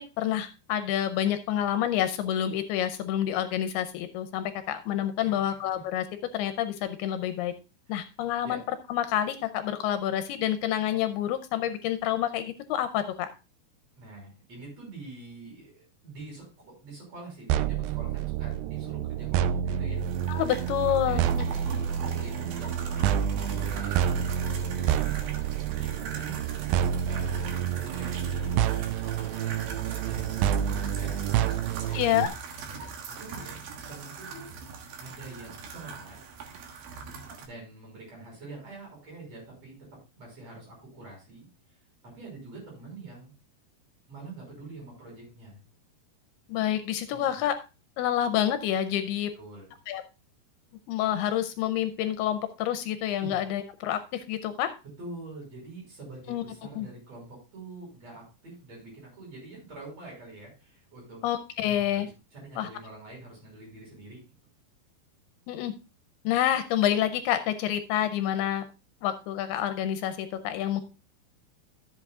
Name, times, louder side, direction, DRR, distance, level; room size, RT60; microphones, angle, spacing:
voice 1, 0.0-6.0 6.3-7.5 7.9-8.6 8.9-13.3 20.3-21.2 31.9-32.3 46.5-47.6 48.0-49.3 49.9-50.0 50.9-54.7 56.3-56.4 56.8-56.9 61.2-62.1 62.6-62.7 65.5-65.7 66.2-68.6 69.0-70.8, left 11 dB, 80° left, 10 dB, 2.5 m, -28 dB
voice 2, 5.2-5.6 7.9-8.0 8.4-8.6 14.0-20.0 21.1-25.2 25.5-26.4 27.0-32.3 33.1-33.6 33.9-34.5 35.0-36.2 37.4-41.5 42.0-43.3 44.1-45.6 47.1-47.5 49.4-49.7 53.2-53.4 55.0-61.2 61.6-64.2, right 2 dB, 40° right, -2 dB, 6.5 m, -46 dB
sound 1, 17.5-32.3, right 9 dB, 90° right, 2.0 m, -28 dB
sound 2, 20.0-37.4, right 5 dB, 70° right, 3.1 m, -42 dB
13.5 x 7.8 x 2.4 m, 0.29 s
omnidirectional pair, 4.7 m